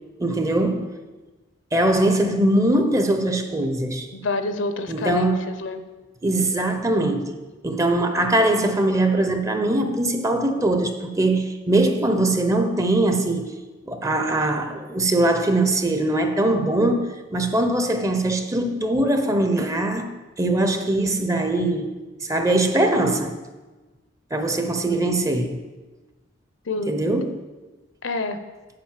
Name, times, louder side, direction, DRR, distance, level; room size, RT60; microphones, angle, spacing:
voice 1, 0.2-0.9 1.7-4.1 4.9-5.5 6.2-7.4 7.6-13.5 13.8-20.1 20.4-21.9 22.2-23.4 24.3-25.6 26.9-27.4, right 1 dB, 15° right, 0.6 m, -21 dB
voice 2, 4.1-5.3 5.6-5.9 24.9-25.1 26.7-27.0 28.0-28.4, left 3 dB, 70° left, 0.7 m, -27 dB
7.6 x 5.2 x 7.3 m
head